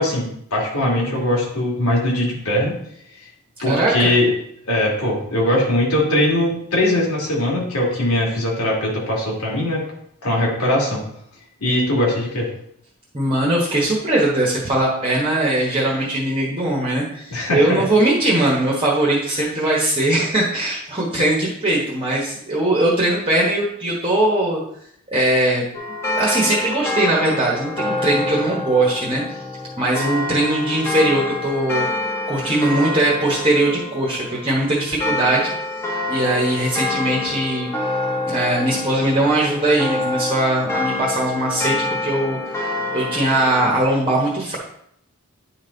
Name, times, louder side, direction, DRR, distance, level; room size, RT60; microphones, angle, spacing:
voice 1, 0.0-2.8 3.6-4.3 4.7-9.8 10.2-11.0 11.6-12.5 17.3-17.8, left 1 dB, 90° left, -3 dB, 2.5 m, -20 dB
voice 2, 3.7-4.1 13.1-24.6 25.1-25.6 26.1-29.2 29.8-31.9 32.3-35.5 36.1-37.7 38.3-41.8 42.0-42.4 42.9-44.6, right 1 dB, 25° right, -4 dB, 1.3 m, -20 dB
sound 1, 25.7-43.8, left 2 dB, 10° left, 1.2 m, -27 dB
9.5 x 4.1 x 4.0 m, 0.70 s
head